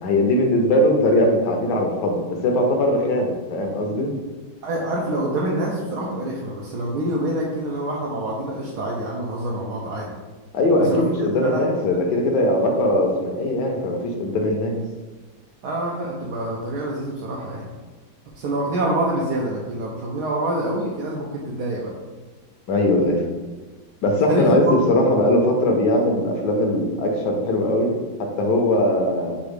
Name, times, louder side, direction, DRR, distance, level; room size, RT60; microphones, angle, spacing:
voice 1, 0.0-4.1 10.5-14.8 22.7-23.2 24.0-27.9 28.2-29.3, left 1 dB, 65° left, 1 dB, 1.2 m, -20 dB
voice 2, 4.6-10.1 10.8-11.0 11.4-11.6 15.6-17.7 18.3-21.9 24.3-24.9, right 1 dB, 70° right, -3 dB, 1.1 m, -26 dB
6.8 x 2.3 x 3.2 m, 1.3 s
omnidirectional pair, 2.1 m